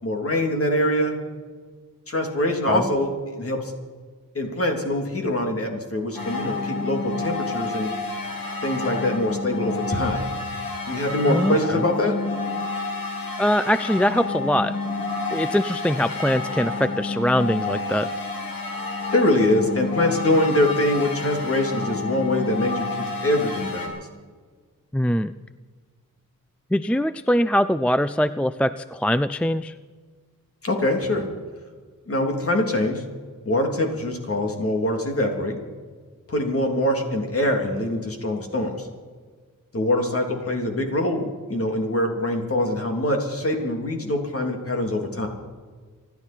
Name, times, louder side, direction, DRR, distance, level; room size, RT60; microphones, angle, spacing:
voice 1, 0.0-1.1 2.1-3.7 4.3-7.9 8.6-10.3 10.9-12.1 19.1-23.9 30.6-31.2 32.1-33.0 33.4-35.6 36.3-38.9 39.7-45.3, left 1 dB, 45° left, 2 dB, 3.2 m, -24 dB
sound 1, 6.1-23.9, left 3 dB, 90° left, 3.6 m, -29 dB
voice 2, 11.3-11.8 13.4-14.7 15.3-18.1 24.9-25.3 26.7-29.7, equal, 5° left, 13 dB, 0.4 m, -22 dB
26.5 x 11.5 x 4.5 m, 1.5 s
wide cardioid pair, 90°, 33 cm